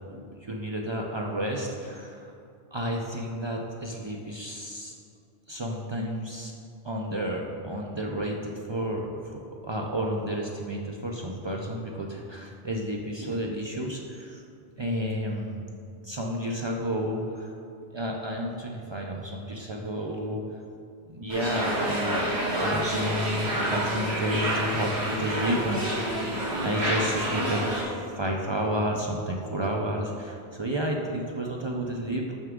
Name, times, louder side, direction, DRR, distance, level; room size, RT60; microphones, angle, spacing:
voice 1, 0.1-2.3 2.7-5.0 5.5-6.5 6.8-14.4 14.8-15.6 16.0-17.5 17.9-20.4 21.1-26.3 26.6-32.4, equal, 45° right, -1 dB, 0.3 m, -31 dB
sound 1, 21.3-27.8, right 1 dB, 85° right, 1.7 m, -28 dB
6.5 x 5.9 x 3.6 m, 2.5 s
omnidirectional pair, 1.1 m